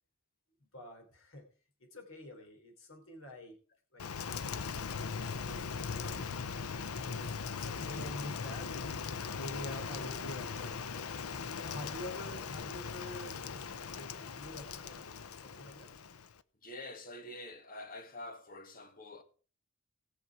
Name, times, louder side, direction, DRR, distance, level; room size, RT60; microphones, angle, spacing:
voice 1, 0.6-1.4 1.9-3.5 3.9-4.1 5.3-6.3 7.1-8.7 9.3-11.0 11.6-15.9, left 1 dB, 65° left, 3.2 m, -47 dB
Rain, 4.0-16.4, left 5 dB, 80° left, 0.7 m, -40 dB
voice 2, 16.6-19.2, left 2 dB, 40° left, 1.7 m, -46 dB
19.5 x 6.5 x 4.6 m
head